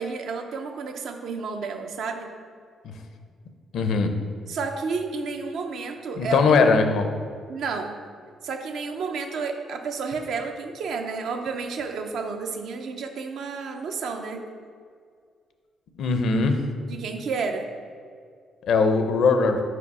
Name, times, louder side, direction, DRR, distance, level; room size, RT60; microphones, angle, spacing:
voice 1, 0.0-2.3 4.5-6.4 7.5-7.9 8.4-14.4 16.9-17.7, right 4 dB, 70° right, 5 dB, 0.6 m, -31 dB
voice 2, 3.7-4.1 6.2-7.1 16.0-16.6 18.6-19.6, left 4 dB, 75° left, 6 dB, 0.6 m, -20 dB
4.9 x 4.9 x 4.8 m, 2.1 s
cardioid pair, 90°, 0 cm